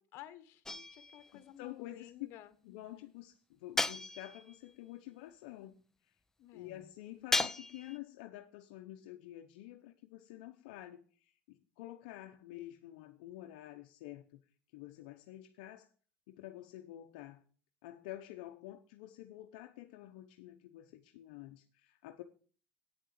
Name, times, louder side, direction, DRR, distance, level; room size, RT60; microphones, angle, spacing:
voice 1, 0.1-2.5 6.4-6.9, left 12 dB, 60° left, 12 dB, 1.3 m, -53 dB
sound 1, 0.6-1.3 3.8-4.6 7.3-8.0, left 2 dB, 10° left, 0.6 m, -35 dB
voice 2, 1.3-2.1 2.6-5.8 6.5-14.4 14.7-15.9 16.3-17.4 17.8-22.2, left 14 dB, 80° left, 5 dB, 0.8 m, -49 dB
8.9 x 6.6 x 7.5 m, 0.42 s
supercardioid pair, 105°, 5 cm